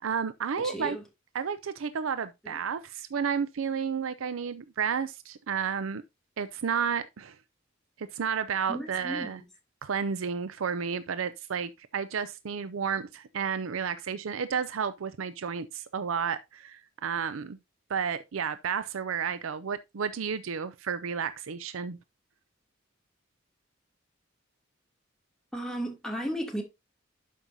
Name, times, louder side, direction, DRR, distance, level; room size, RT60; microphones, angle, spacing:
voice 1, 0.0-1.0 1.3-6.0 6.4-7.4 8.0-9.4 9.8-17.6 17.9-22.0, right 6 dB, 90° right, 0.5 m, -32 dB
voice 2, 0.6-1.0 2.4-2.6 8.7-9.4 25.5-26.6, equal, 5° left, 2.5 m, -35 dB
12.0 x 5.4 x 2.7 m
head